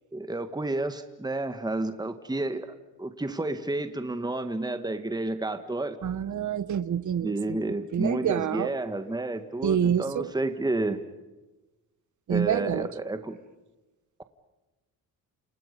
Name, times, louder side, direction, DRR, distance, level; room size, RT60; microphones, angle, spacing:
voice 1, 0.1-6.0 7.2-11.0 12.3-13.4, right 2 dB, 10° right, 1.8 m, -30 dB
voice 2, 6.0-8.7 9.6-10.3 12.3-12.9, right 9 dB, 50° right, 1.2 m, -27 dB
29.0 x 28.0 x 5.5 m
cardioid pair, 85°, 39 cm